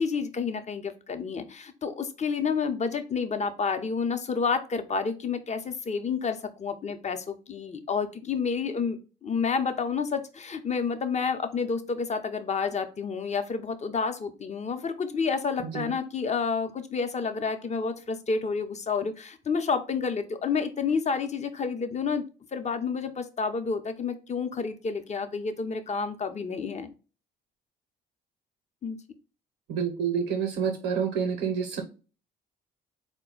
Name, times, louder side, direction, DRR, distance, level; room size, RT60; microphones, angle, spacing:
voice 1, 0.0-22.2 22.5-26.9 28.8-29.0, left 5 dB, 35° left, 8 dB, 0.7 m, -29 dB
voice 2, 29.7-31.8, right 7 dB, 80° right, 3 dB, 0.8 m, -28 dB
4.1 x 2.2 x 3.8 m, 0.34 s
supercardioid pair, 65°, 21 cm